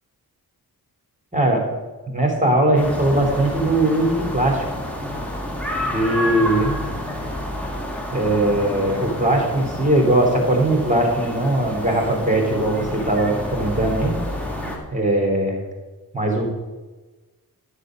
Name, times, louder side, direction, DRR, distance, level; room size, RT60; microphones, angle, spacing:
voice 1, 1.3-1.6 2.1-4.6 5.9-6.8 8.1-14.1 14.9-15.6 16.1-16.4, right 1 dB, 20° right, 2 dB, 3.2 m, -20 dB
sound 1, 2.7-14.8, equal, 5° left, 2.3 m, -29 dB
12.0 x 6.7 x 6.4 m, 1.2 s
wide cardioid pair, 75°, 38 cm